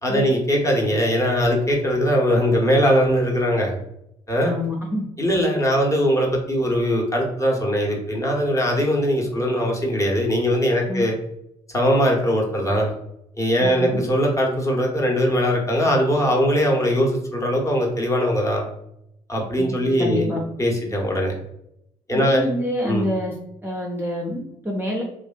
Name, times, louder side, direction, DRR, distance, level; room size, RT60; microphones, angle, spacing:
voice 1, 0.0-3.7 4.3-4.6 5.2-11.1 11.7-12.9 13.4-18.7 19.3-20.3 20.6-21.3 22.1-22.4 22.8-23.1, equal, 15° left, -1 dB, 0.8 m, -20 dB
voice 2, 4.4-5.1 10.9-11.0 13.6-14.0 19.6-19.7 20.0-20.4 22.1-23.3 23.6-25.0, left 1 dB, 10° right, -2 dB, 0.6 m, -26 dB
2.5 x 2.4 x 2.2 m, 0.81 s
hypercardioid pair, 45°, 18 cm